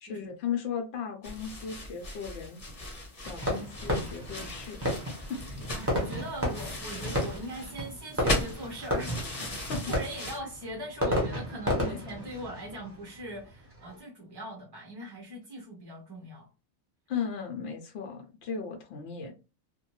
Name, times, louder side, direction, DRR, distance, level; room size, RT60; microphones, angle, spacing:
voice 1, 0.0-2.6 3.2-4.8 5.3-5.4 9.4-9.9 11.8-12.0 17.1-19.3, left 6 dB, 70° left, 4 dB, 0.8 m, -36 dB
sound 1, 1.2-10.4, left 1 dB, 35° left, 0.9 m, -38 dB
Fireworks, 3.4-14.0, equal, 10° right, 1.0 m, -33 dB
voice 2, 5.7-9.1 9.9-16.5, equal, 30° right, -2 dB, 0.4 m, -41 dB
2.5 x 2.2 x 3.0 m, 0.31 s
omnidirectional pair, 1.2 m